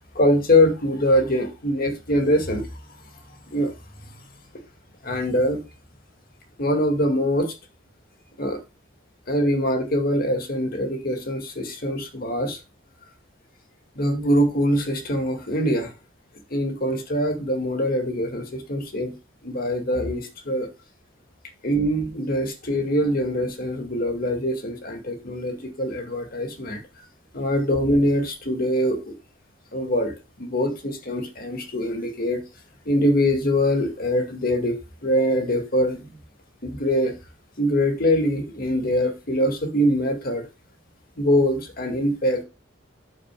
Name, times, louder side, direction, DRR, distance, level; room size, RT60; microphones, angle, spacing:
voice 1, 0.2-2.7 3.5-3.7 5.0-5.6 6.6-7.5 8.4-8.6 9.3-12.6 14.0-15.9 16.5-19.1 19.4-20.7 21.6-26.8 27.3-29.2 29.7-32.4 32.9-34.8 35.0-36.1 36.6-37.1 37.6-40.5 41.2-42.4, equal, 45° left, 2.0 m, -23 dB
12.5 x 6.6 x 2.2 m
head